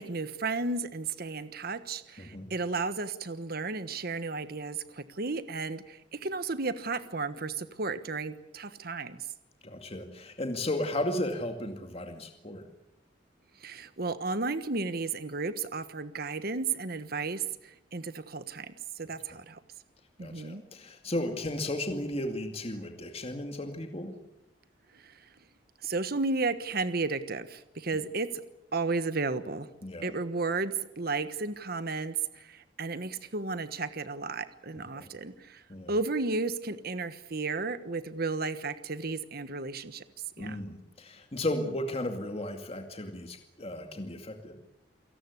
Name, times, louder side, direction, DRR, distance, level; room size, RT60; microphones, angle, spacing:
voice 1, 0.0-9.2 13.6-19.6 20.2-20.6 24.9-25.3 25.8-28.4 28.7-29.7 30.0-35.6 35.9-40.0 40.4-40.6, right 3 dB, 55° right, 12 dB, 1.3 m, -33 dB
voice 2, 2.2-2.5 9.6-12.6 20.2-24.1 29.8-30.1 34.9-35.1 35.7-35.9 40.4-44.6, left 1 dB, 35° left, 5 dB, 2.3 m, -34 dB
29.0 x 18.0 x 8.4 m, 0.88 s
head